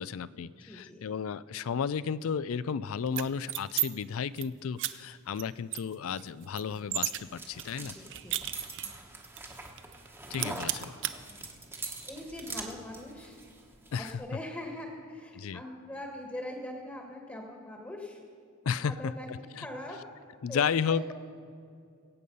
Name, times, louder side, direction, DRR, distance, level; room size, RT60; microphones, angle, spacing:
voice 1, 0.0-7.9 10.3-10.9 13.9-14.1 15.3-15.6 18.7-19.7 20.4-21.0, left 6 dB, 65° left, 18 dB, 0.4 m, -33 dB
voice 2, 0.7-1.1 7.8-8.4 8.8-9.1 10.5-10.7 11.3-11.5 12.0-13.4 14.0-18.2 18.8-19.3 19.5-20.0 20.5-21.1, left 1 dB, 10° left, 1 dB, 1.4 m, -42 dB
sound 1, 3.1-3.9 4.2-4.5 4.8-4.9 5.4-5.5 5.7-7.2 7.6-9.0 9.4-9.5 9.8-10.1 10.3-11.1, right 14 dB, 55° right, 0.6 m, -33 dB
sound 2, 6.7-14.1, right 3 dB, 10° right, 1.2 m, -44 dB
22.5 x 8.5 x 5.4 m, 2.4 s
head